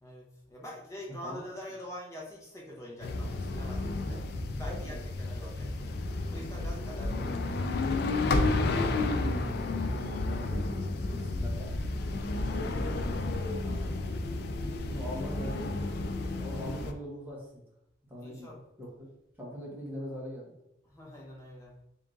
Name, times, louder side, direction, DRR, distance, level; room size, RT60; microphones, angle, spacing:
voice 1, 0.0-4.2 4.6-5.9 6.3-7.3 14.6-15.1 18.2-18.6 20.8-21.7, left 1 dB, 15° left, -3 dB, 0.9 m, -45 dB
sound 1, 3.0-16.9, left 2 dB, 60° left, 0.4 m, -31 dB
voice 2, 4.7-5.1 9.0-11.8 12.1-12.4 12.9-13.2 13.6-13.9 14.9-17.6 18.1-18.5 18.8-18.9 19.4-20.5, equal, 10° right, -5 dB, 1.2 m, -42 dB
3.5 x 2.7 x 3.7 m, 0.84 s
head